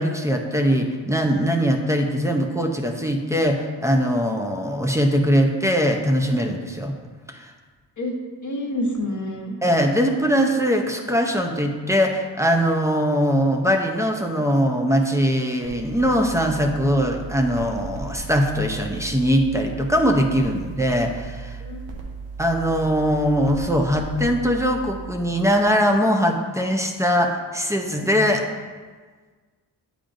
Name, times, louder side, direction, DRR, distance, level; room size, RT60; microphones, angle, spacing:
voice 1, 0.0-6.9 7.3-7.4 9.6-21.6 22.4-28.4, equal, 5° right, 3 dB, 0.6 m, -21 dB
voice 2, 8.4-9.6 21.6-21.8, left 1 dB, 45° left, 0 dB, 1.1 m, -27 dB
sound 1, 15.6-25.9, right 4 dB, 85° right, 1.0 m, -37 dB
8.7 x 5.0 x 2.6 m, 1.5 s
cardioid pair, 85°, 43 cm